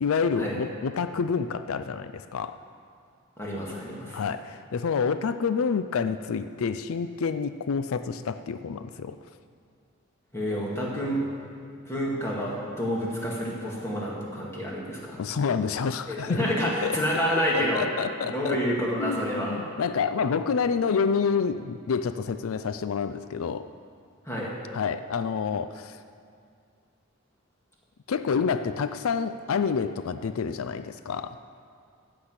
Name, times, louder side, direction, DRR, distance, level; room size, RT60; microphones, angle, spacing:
voice 1, 0.0-2.6 4.1-9.2 15.2-16.5 16.8-16.9 17.5-18.6 19.0-23.7 24.7-26.0 28.1-31.4, left 5 dB, 90° left, 11 dB, 0.4 m, -28 dB
voice 2, 3.4-4.2 10.3-11.2 11.8-15.2 16.1-17.8 18.3-19.6 24.3-24.5, equal, 15° left, -4 dB, 2.1 m, -28 dB
14.5 x 5.9 x 8.2 m, 2.4 s
head